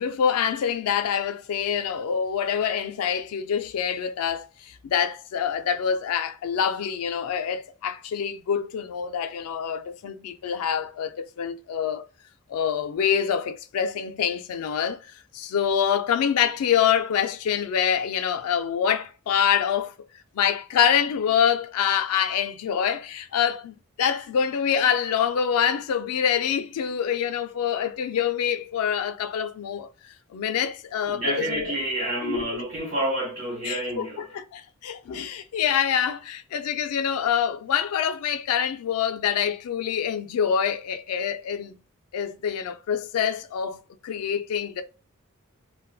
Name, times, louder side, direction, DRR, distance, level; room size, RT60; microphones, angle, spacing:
voice 1, 0.0-12.0 12.5-15.0 15.3-19.9 20.3-29.9 30.3-31.7 32.2-32.4 33.7-33.8 34.3-41.7 42.1-44.8, left 8 dB, 85° left, 0.3 m, -25 dB
voice 2, 31.1-34.2, right 1 dB, 50° right, 1.3 m, -28 dB
2.5 x 2.2 x 2.3 m
head